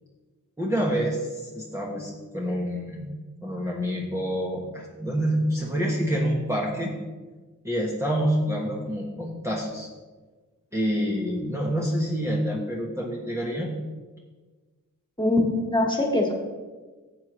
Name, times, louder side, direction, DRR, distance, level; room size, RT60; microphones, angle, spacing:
voice 1, 0.6-3.1 3.4-6.9 7.6-9.9 10.7-13.7, equal, 10° right, -4 dB, 1.5 m, -27 dB
voice 2, 15.2-16.3, left 2 dB, 15° left, 0 dB, 2.1 m, -23 dB
13.0 x 7.7 x 3.2 m, 1.3 s
wide cardioid pair, 55°, 32 cm